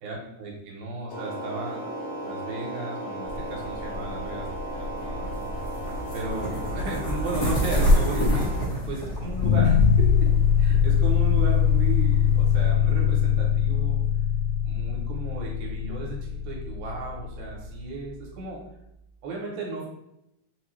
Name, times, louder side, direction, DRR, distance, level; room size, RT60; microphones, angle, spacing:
voice 1, 0.0-5.5 6.1-8.5 8.9-9.8 10.6-14.0 14.6-18.6 19.2-19.9, right 2 dB, 80° right, -2 dB, 2.7 m, -35 dB
sound 1, 1.1-8.6, right 1 dB, 85° left, 1.4 m, -36 dB
sound 2, 3.2-12.7, left 1 dB, 55° left, 1.0 m, -28 dB
sound 3, 9.4-18.4, left 7 dB, 70° left, 2.0 m, -22 dB
6.3 x 2.3 x 3.1 m, 0.83 s
omnidirectional pair, 4.1 m